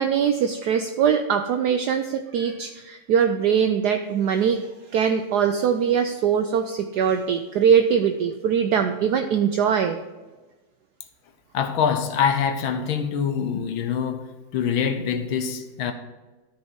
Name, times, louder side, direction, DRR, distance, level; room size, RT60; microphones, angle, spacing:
voice 1, 0.0-4.7 4.9-10.0, right 7 dB, 80° right, 6 dB, 0.9 m, -22 dB
voice 2, 11.5-15.9, left 7 dB, 75° left, 8 dB, 1.7 m, -25 dB
13.0 x 5.5 x 4.6 m, 1.2 s
omnidirectional pair, 2.3 m